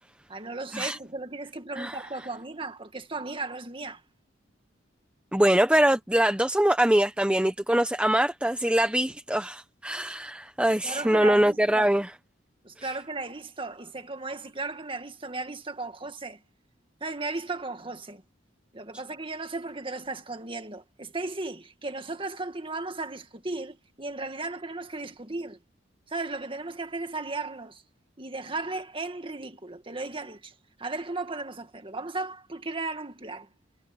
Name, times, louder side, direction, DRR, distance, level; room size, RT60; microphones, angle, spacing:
voice 1, 0.3-4.0 10.8-11.9 12.6-16.4 17.0-18.2 18.7-25.6 26.1-27.8 28.2-33.5, right 3 dB, 30° right, 2.0 m, -35 dB
voice 2, 5.3-12.1, right 1 dB, 5° right, 0.8 m, -23 dB
head